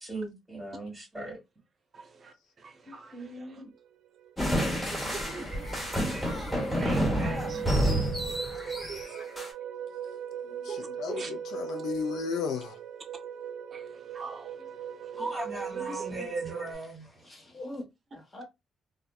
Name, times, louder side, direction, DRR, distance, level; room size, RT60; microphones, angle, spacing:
voice 1, 0.0-1.4 2.8-3.7 10.4-10.7 15.2-17.1, right 2 dB, 5° right, 1.2 m, -38 dB
voice 2, 1.9-3.6 4.9-6.3 6.8-7.9 8.3-9.3 10.7-11.3 13.7-14.7 15.0-15.3 15.7-16.3, right 4 dB, 40° right, 0.6 m, -44 dB
sound 1, 3.9-4.0 4.2-16.7, right 8 dB, 85° right, 0.3 m, -40 dB
sound 2, 4.4-9.5, equal, 10° left, 1.3 m, -29 dB
voice 3, 5.5-6.1 6.4-7.2 7.7-7.9 17.2-17.8 18.1-18.4, left 1 dB, 30° left, 0.9 m, -45 dB
voice 4, 10.6-12.8, left 6 dB, 80° left, 0.4 m, -34 dB
2.6 x 2.3 x 2.2 m
cardioid pair, 90°, 0 cm